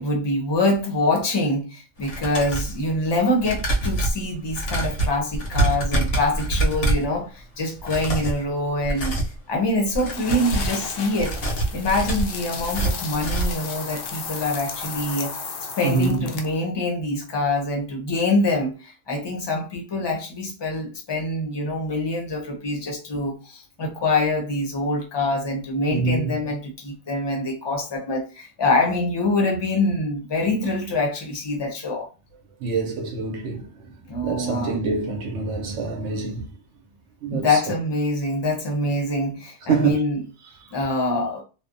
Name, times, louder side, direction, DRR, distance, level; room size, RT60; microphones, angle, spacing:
voice 1, 0.0-9.2 9.5-15.3 15.8-32.1 34.1-34.8 37.3-40.2 40.7-41.4, left 2 dB, 30° left, 0.6 m, -25 dB
sound 1, 2.0-2.8 3.4-7.1 7.8-8.4 8.8-9.4 9.8-10.8 11.2-13.7 14.0-14.1 14.5-14.6, right 2 dB, 85° left, 1.2 m, -25 dB
sound 2, 10.1-16.6, left 5 dB, 65° left, 0.7 m, -34 dB
voice 2, 15.8-16.3 25.9-26.4 32.6-33.7 34.2-36.5 37.2-37.5 39.7-40.0, right 4 dB, 80° right, 0.9 m, -25 dB
2.7 x 2.0 x 2.5 m
omnidirectional pair, 1.2 m